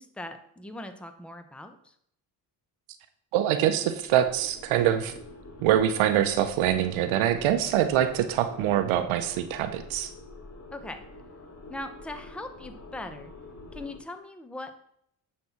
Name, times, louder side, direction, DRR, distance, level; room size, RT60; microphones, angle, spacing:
voice 1, 0.0-1.9 10.7-11.0 11.7-13.3 13.7-14.7, left 1 dB, ahead, 8 dB, 0.9 m, -40 dB
voice 2, 3.3-5.1 5.6-10.1, right 11 dB, 75° right, 9 dB, 0.9 m, -24 dB
sound 1, 3.6-14.0, left 2 dB, 30° left, 1.5 m, -47 dB
9.5 x 4.3 x 5.8 m, 0.70 s
supercardioid pair, 70°, 48 cm